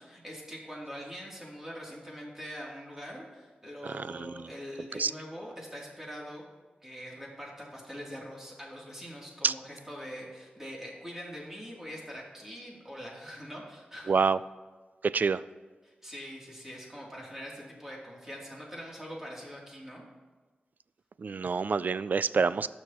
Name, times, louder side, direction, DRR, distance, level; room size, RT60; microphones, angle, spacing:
voice 1, 0.0-6.4 6.8-14.1 15.8-20.0, equal, 15° right, -4 dB, 2.9 m, -43 dB
voice 2, 3.8-4.5 4.9-5.1 9.4-9.5 14.1-14.4 15.0-15.4 21.2-22.7, right 5 dB, 60° right, 16 dB, 0.3 m, -27 dB
18.0 x 6.4 x 3.0 m, 1.3 s
wide cardioid pair, 80°, 3 cm